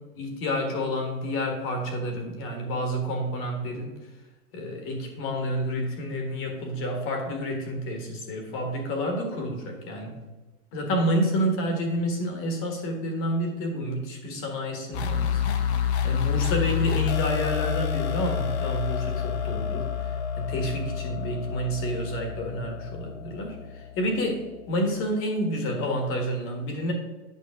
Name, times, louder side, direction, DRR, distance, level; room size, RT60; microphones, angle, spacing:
voice 1, 0.1-3.9 4.5-10.2 10.7-15.6 16.0-26.9, equal, 30° left, 3 dB, 1.5 m, -29 dB
sound 1, 14.9-24.5, left 8 dB, 45° left, 0.9 m, -29 dB
8.4 x 5.7 x 3.6 m, 1.2 s
hypercardioid pair, 140°, 45 cm